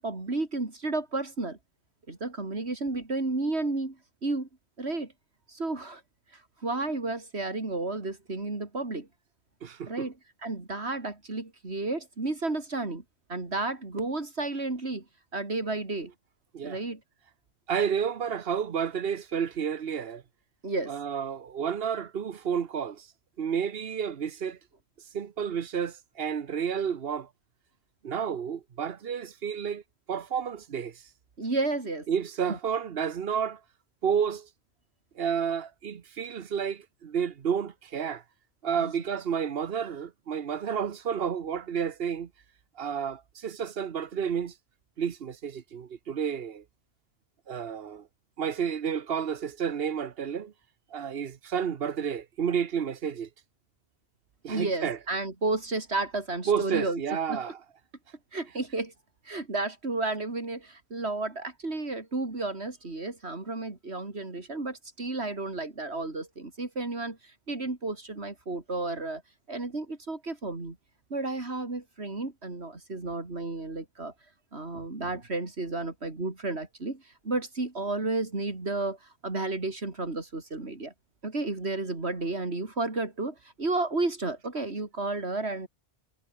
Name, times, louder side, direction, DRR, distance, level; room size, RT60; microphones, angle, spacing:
voice 1, 0.0-1.6 2.1-4.0 4.2-4.5 4.8-5.1 5.5-6.0 6.3-9.1 9.9-10.1 10.4-13.0 13.3-15.0 15.3-16.1 16.6-17.0 20.6-20.9 31.4-32.1 32.5-32.6 38.8-38.9 54.5-57.0 57.3-57.4 58.3-58.9 59.2-69.2 69.5-70.8 71.1-74.1 74.5-80.9 81.2-85.7, right 2 dB, 90° right, 3.8 m, -32 dB
voice 2, 9.6-10.1 16.5-16.8 17.7-20.2 20.9-23.1 23.4-24.6 25.1-27.3 28.0-29.8 30.1-31.0 32.1-33.6 34.0-34.5 35.2-38.2 38.6-42.3 42.8-44.5 45.0-46.6 47.5-48.1 48.4-50.5 50.9-53.3 54.4-55.0 56.5-57.6, right 7 dB, 65° right, 1.2 m, -31 dB
omnidirectional pair, 1.1 m